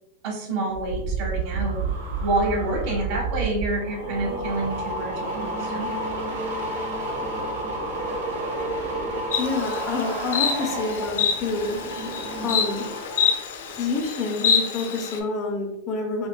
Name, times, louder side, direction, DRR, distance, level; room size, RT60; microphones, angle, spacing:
voice 1, 0.2-1.8 2.2-5.9, right 2 dB, 50° right, -1 dB, 1.2 m, -28 dB
sound 1, 0.7-13.4 13.7-14.1, right 2 dB, 75° right, 1.4 m, -30 dB
Insect, 9.3-15.2, left 6 dB, 80° left, 0.5 m, -27 dB
voice 2, 9.4-11.8 12.4-12.8 13.7-16.3, left 3 dB, 30° left, 2 dB, 0.5 m, -28 dB
5.1 x 2.3 x 2.2 m, 0.92 s
supercardioid pair, 155°, 0 cm